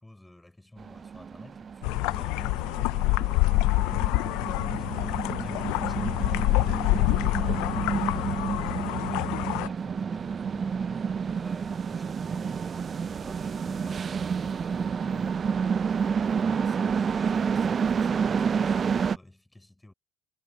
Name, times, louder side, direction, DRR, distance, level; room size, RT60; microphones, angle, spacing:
voice 1, 0.0-3.1 8.2-8.5 8.9-15.7 16.4-19.9, left 1 dB, 5° left, 4.3 m, -49 dB
sound 1, 0.8-19.2, right 6 dB, 35° right, 0.5 m, -30 dB
sound 2, 1.8-9.7, left 22 dB, 80° left, 0.4 m, -26 dB
voice 2, 4.9-8.0, right 2 dB, 10° right, 6.1 m, -43 dB
supercardioid pair, 105°, 0 cm